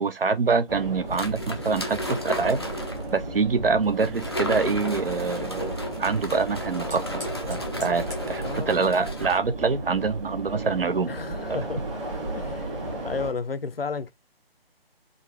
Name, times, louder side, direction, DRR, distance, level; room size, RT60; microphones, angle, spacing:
voice 1, 0.0-2.6 3.1-11.1 11.5-11.6, right 4 dB, 65° right, 0.7 m, -25 dB
sound 1, 0.7-13.3, right 1 dB, 30° right, 1.4 m, -34 dB
sound 2, 1.1-3.1 4.0-9.4, left 1 dB, 25° left, 0.4 m, -35 dB
Fire, 4.0-11.2, left 1 dB, 5° right, 0.8 m, -50 dB
voice 2, 8.4-8.8 11.1-11.8 12.3-14.1, left 5 dB, 70° left, 0.7 m, -33 dB
3.8 x 2.5 x 3.2 m
figure-of-eight pair, 150°, 31 cm